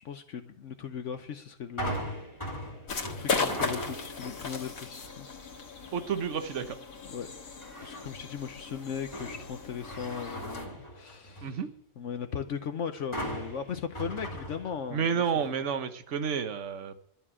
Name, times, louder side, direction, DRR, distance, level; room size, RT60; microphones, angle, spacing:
voice 1, 0.0-2.0 3.0-5.3 7.0-7.3 7.8-11.6 12.0-15.2, left 7 dB, 65° left, 1.1 m, -38 dB
sound 1, 1.8-4.3 4.8-5.2 7.6-8.3 8.7-11.6 13.1-15.1 15.4-15.5, equal, 20° left, 2.6 m, -39 dB
sound 2, 2.9-10.7, left 4 dB, 90° left, 2.0 m, -37 dB
voice 2, 5.9-6.8 11.4-11.7 14.9-16.9, right 6 dB, 65° right, 1.4 m, -30 dB
12.0 x 6.9 x 9.8 m
omnidirectional pair, 1.4 m